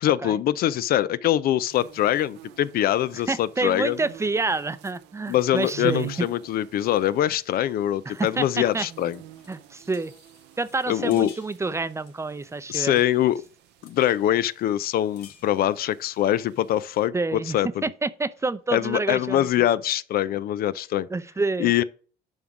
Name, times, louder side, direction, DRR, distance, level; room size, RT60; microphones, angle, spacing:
voice 1, 0.0-4.0 5.3-9.2 10.9-11.3 12.7-13.4 13.8-17.8 18.7-21.1 21.6-21.8, left 12 dB, 65° left, 0.5 m, -23 dB
sound 1, 1.7-17.1, right 14 dB, 85° right, 0.7 m, -45 dB
voice 2, 3.3-6.3 8.1-8.9 9.5-10.1 10.6-13.0 17.1-17.6 17.8-19.5 21.1-21.7, right 3 dB, 15° right, 0.6 m, -28 dB
sound 2, 8.2-8.5 9.0-14.2 14.6-14.7 15.0-15.9, left 7 dB, 85° left, 2.7 m, -54 dB
11.0 x 3.7 x 6.0 m
cardioid pair, 110°, 17 cm